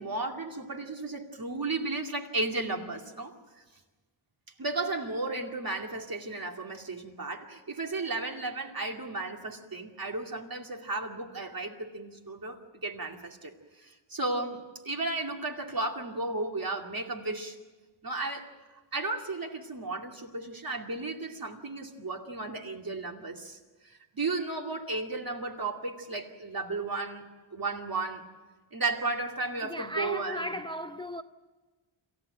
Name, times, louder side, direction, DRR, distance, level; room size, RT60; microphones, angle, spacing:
voice 1, 0.0-3.3 4.6-13.5 13.8-17.6 18.0-18.5 18.9-28.2 28.7-30.5, right 3 dB, 45° right, 2.4 m, -34 dB
voice 2, 29.6-31.2, equal, 10° left, 0.6 m, -35 dB
27.0 x 14.5 x 9.0 m
wide cardioid pair, 85°, 47 cm